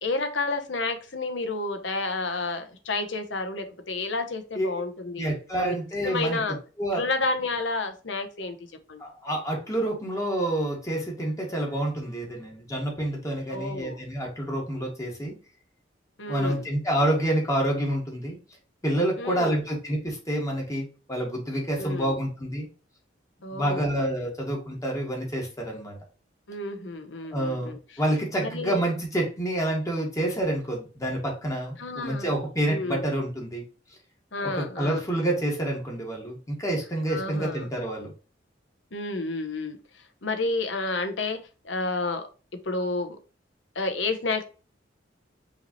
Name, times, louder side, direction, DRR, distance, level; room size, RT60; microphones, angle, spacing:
voice 1, 0.0-5.3 5.6-5.7 6.0-6.6 6.9-8.6 8.9-9.0 13.5-14.0 16.2-16.6 19.2-19.6 21.8-22.2 23.4-23.9 26.5-27.8 28.4-28.8 31.8-32.3 32.7-33.0 34.3-35.1 37.1-37.6 38.9-42.3 42.6-43.2 43.7-44.4, left 3 dB, 75° left, 7 dB, 1.0 m, -30 dB
voice 2, 5.2-6.4 6.8-7.0 9.0-15.3 16.3-18.4 18.8-22.7 23.5-26.0 27.3-33.6 34.4-38.1, right 1 dB, 15° left, -1 dB, 1.5 m, -28 dB
5.5 x 3.2 x 2.8 m, 0.35 s
head